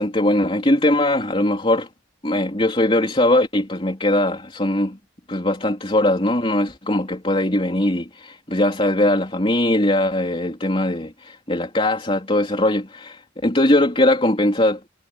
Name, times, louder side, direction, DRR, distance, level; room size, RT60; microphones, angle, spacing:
voice 1, 0.0-1.9 2.2-5.0 5.3-14.9, left 1 dB, 30° left, 3.7 m, -20 dB
head